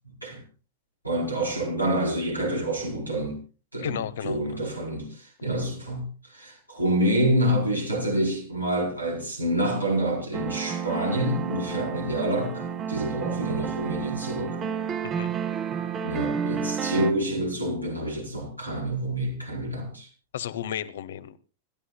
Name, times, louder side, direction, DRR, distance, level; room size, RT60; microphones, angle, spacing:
voice 1, 1.0-3.4 3.7-14.6 15.7-20.1, right 1 dB, 90° right, 4.9 m, -27 dB
voice 2, 3.8-4.6 15.0-15.3 20.3-21.4, left 10 dB, 60° left, 1.0 m, -33 dB
sound 1, 10.3-17.1, right 7 dB, 25° right, 1.3 m, -31 dB
26.5 x 13.0 x 2.3 m
figure-of-eight pair, 90°, 0 cm